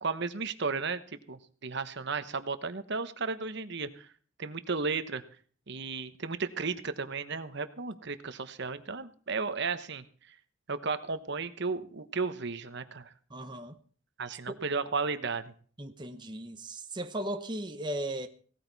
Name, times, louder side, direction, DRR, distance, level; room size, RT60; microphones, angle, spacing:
voice 1, 0.0-4.1 4.4-5.2 5.7-10.3 10.7-13.1 14.2-15.5, right 4 dB, 60° right, 1.1 m, -34 dB
voice 2, 13.3-13.8 14.5-14.6 15.8-18.3, right 1 dB, 20° right, 0.9 m, -37 dB
17.5 x 13.5 x 4.1 m
head